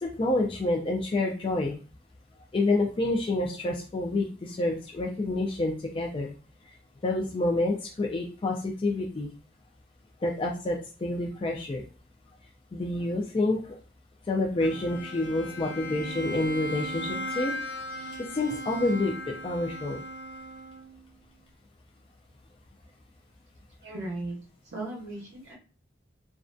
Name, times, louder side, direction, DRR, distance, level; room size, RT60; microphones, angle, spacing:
voice 1, 0.0-1.7 2.5-6.3 7.0-9.3 10.2-11.8 12.7-13.8 14.3-17.5 18.3-19.1 19.4-20.0, left 2 dB, 30° left, 1 dB, 0.3 m, -28 dB
Bowed string instrument, 14.6-21.0, equal, 85° left, 0.7 m, -37 dB
voice 2, 23.8-24.4 24.7-25.5, right 2 dB, 70° right, -4 dB, 0.6 m, -36 dB
2.3 x 2.1 x 2.5 m, 0.36 s
head